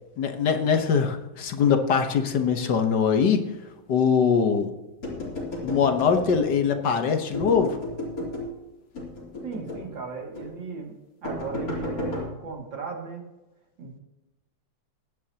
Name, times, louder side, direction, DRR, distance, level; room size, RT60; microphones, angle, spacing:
voice 1, 0.2-3.4 3.9-4.7 5.6-7.8, left 6 dB, 65° left, 6 dB, 1.7 m, -22 dB
sound 1, 5.0-6.8 7.3-8.5 8.9-9.9 10.4-10.5 11.2-12.3, left 1 dB, 45° left, 3.8 m, -33 dB
voice 2, 9.4-10.9 11.2-13.2 13.8-14.0, right 5 dB, 75° right, 0 dB, 3.1 m, -36 dB
21.5 x 9.9 x 2.9 m, 1.1 s
omnidirectional pair, 2.1 m